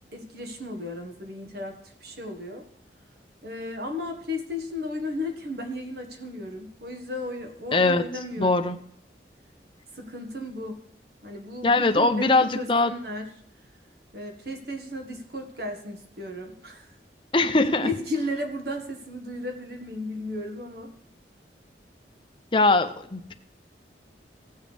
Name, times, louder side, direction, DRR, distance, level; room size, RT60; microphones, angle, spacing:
voice 1, 0.1-2.7 3.4-8.6 9.9-10.8 11.2-13.3 14.1-16.9 17.8-20.9, left 1 dB, 60° right, 4 dB, 1.6 m, -34 dB
voice 2, 7.7-8.8 11.6-12.9 17.3-17.9 22.5-23.3, left 3 dB, 30° left, 8 dB, 0.7 m, -22 dB
16.0 x 7.2 x 3.4 m, 0.67 s
head